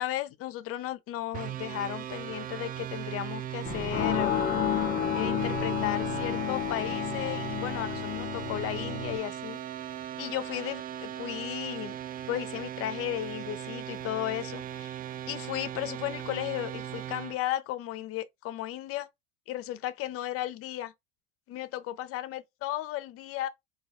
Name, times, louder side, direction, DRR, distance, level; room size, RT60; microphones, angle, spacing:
voice 1, 0.0-4.4 5.1-9.6 10.2-12.0 12.3-15.0 15.3-19.1 19.5-20.9 21.5-23.5, left 13 dB, 50° left, 0.6 m, -35 dB
sound 1, 1.3-17.4, right 11 dB, 30° right, 0.4 m, -38 dB
sound 2, 3.6-9.2, left 7 dB, 35° left, 1.6 m, -30 dB
3.9 x 2.7 x 2.4 m
supercardioid pair, 100°, 30 cm